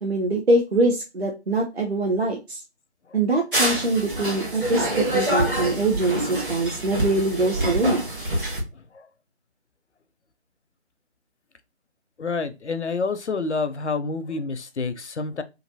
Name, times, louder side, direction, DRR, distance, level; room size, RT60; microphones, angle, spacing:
voice 1, 0.0-2.6 3.1-8.0, right 2 dB, 65° right, 0.7 m, -23 dB
sound 1, 3.5-8.6, right 1 dB, 50° right, 1.4 m, -26 dB
voice 2, 12.2-15.4, left 4 dB, 80° left, 0.6 m, -28 dB
3.2 x 2.6 x 2.6 m
figure-of-eight pair, 160°, 34 cm